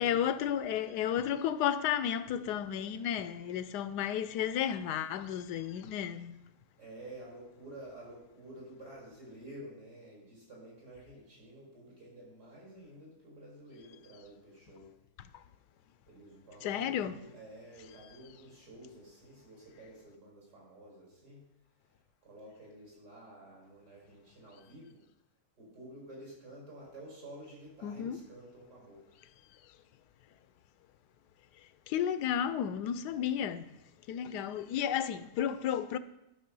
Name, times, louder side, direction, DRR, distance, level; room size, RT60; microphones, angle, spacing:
voice 1, 0.0-6.4 16.6-17.2 27.8-28.2 31.9-33.6 34.1-36.0, left 9 dB, 85° left, 1.2 m, -32 dB
voice 2, 6.8-14.9 16.1-21.5 22.2-25.0 25.6-29.0 33.1-33.4, right 1 dB, 75° right, 5.3 m, -51 dB
11.5 x 6.4 x 5.3 m
omnidirectional pair, 1.7 m